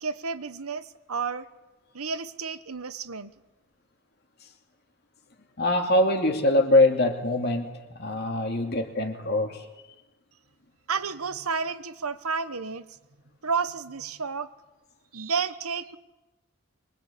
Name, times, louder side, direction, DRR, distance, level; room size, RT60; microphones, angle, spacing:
voice 1, 0.0-1.5 1.9-3.3 10.9-12.8 13.4-14.5 15.1-16.0, right 5 dB, 90° right, 13 dB, 1.2 m, -31 dB
voice 2, 5.6-7.7 7.9-9.6, left 1 dB, 50° left, 3 dB, 2.6 m, -23 dB
24.0 x 22.5 x 8.5 m, 1.1 s
head